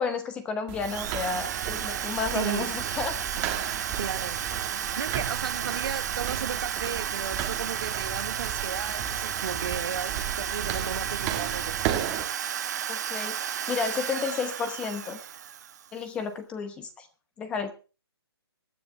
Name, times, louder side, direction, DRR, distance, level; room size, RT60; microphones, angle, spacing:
voice 1, 0.0-3.1 12.9-13.4 13.7-15.2 15.9-17.1 17.4-17.7, left 5 dB, 10° left, 0.9 m, -31 dB
sound 1, 0.7-12.2, right 10 dB, 15° right, 1.6 m, -35 dB
Drill, 0.8-16.0, right 9 dB, 40° right, 1.3 m, -33 dB
voice 2, 2.3-2.7 4.0-4.4 4.8-11.8, right 7 dB, 60° right, 1.2 m, -35 dB
24.0 x 10.0 x 3.3 m
hypercardioid pair, 170°, 14 cm